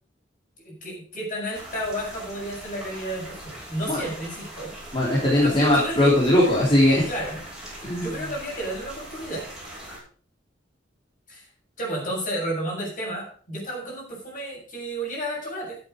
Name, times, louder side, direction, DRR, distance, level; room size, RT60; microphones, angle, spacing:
voice 1, 0.6-4.7 5.3-6.1 7.1-7.4 7.9-9.5 11.3-11.4 11.8-15.8, right 1 dB, 45° left, -2 dB, 7.6 m, -32 dB
sound 1, 1.5-10.0, right 1 dB, 5° right, 5.6 m, -41 dB
voice 2, 4.9-7.1 7.8-8.2, left 1 dB, 30° left, -5 dB, 3.5 m, -20 dB
12.5 x 8.5 x 5.2 m, 0.43 s
head